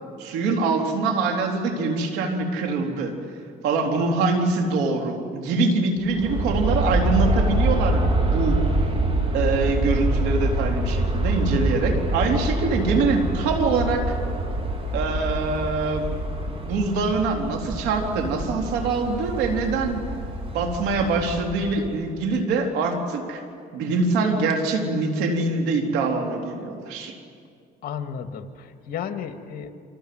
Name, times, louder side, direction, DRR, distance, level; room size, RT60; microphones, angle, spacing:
voice 1, 0.2-3.2 3.6-8.6 9.3-14.2 14.9-16.2 16.5-20.1 20.5-23.4 23.7-27.2, right 3 dB, 90° right, 3 dB, 3.8 m, -24 dB
Aircraft, 6.0-22.1, right 1 dB, 35° right, 3.8 m, -25 dB
voice 2, 27.8-29.7, left 7 dB, 60° left, 7 dB, 2.1 m, -33 dB
28.0 x 26.0 x 7.8 m, 2.3 s
cardioid pair, 110°, 17 cm